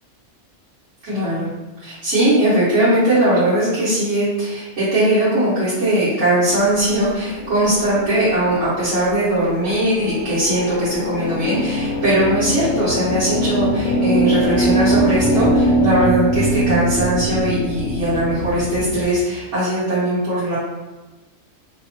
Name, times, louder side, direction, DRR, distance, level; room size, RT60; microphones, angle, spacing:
voice 1, 1.0-1.5 1.8-20.6, right 1 dB, 90° right, -13 dB, 1.4 m, -19 dB
sound 1, 7.2-19.1, equal, 65° left, 0.7 m, -22 dB
2.9 x 2.1 x 2.9 m, 1.2 s
omnidirectional pair, 1.2 m